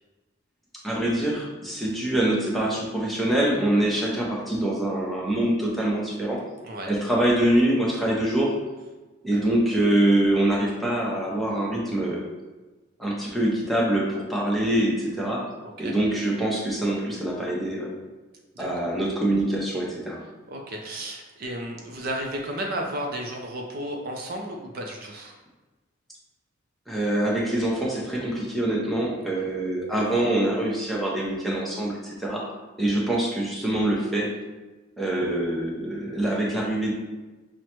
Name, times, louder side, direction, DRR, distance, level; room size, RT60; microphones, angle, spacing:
voice 1, 0.8-6.4 6.9-8.5 9.2-12.3 13.0-15.4 15.8-17.9 18.6-20.2 26.9-32.4 32.8-34.3 35.0-36.9, right 1 dB, ahead, -5 dB, 0.6 m, -24 dB
voice 2, 20.5-25.4 29.3-29.4, right 1 dB, 45° right, 1 dB, 0.4 m, -33 dB
6.0 x 2.1 x 2.9 m, 1.2 s
head